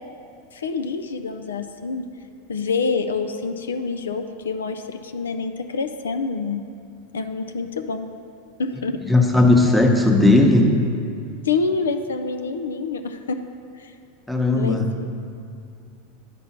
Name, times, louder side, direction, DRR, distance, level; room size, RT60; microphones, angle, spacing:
voice 1, 0.5-2.1 2.5-6.6 7.1-8.1 8.6-9.0 11.4-13.4 13.7-13.9 14.6-15.0, left 4 dB, 80° left, 7 dB, 0.4 m, -27 dB
voice 2, 9.1-10.7 14.3-14.8, left 2 dB, ahead, 1 dB, 0.9 m, -16 dB
10.5 x 3.6 x 5.7 m, 2.5 s
hypercardioid pair, 90°, 0 cm